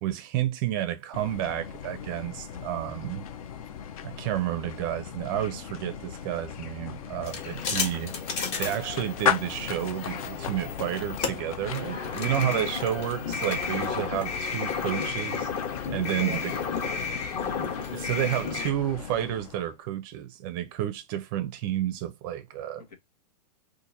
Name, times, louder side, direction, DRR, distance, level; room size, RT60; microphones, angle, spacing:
voice 1, 0.0-3.2 4.0-8.1 8.6-15.5 15.9-16.5 17.9-22.8, right 12 dB, 30° right, 0.5 m, -30 dB
sound 1, 1.1-19.8, left 8 dB, 60° left, 0.6 m, -37 dB
sound 2, 7.2-18.7, left 5 dB, 30° left, 0.9 m, -33 dB
voice 2, 12.0-12.4 15.9-17.2 22.8-23.0, left 5 dB, 75° left, 1.2 m, -42 dB
2.8 x 2.5 x 3.8 m
hypercardioid pair, 145°, 21 cm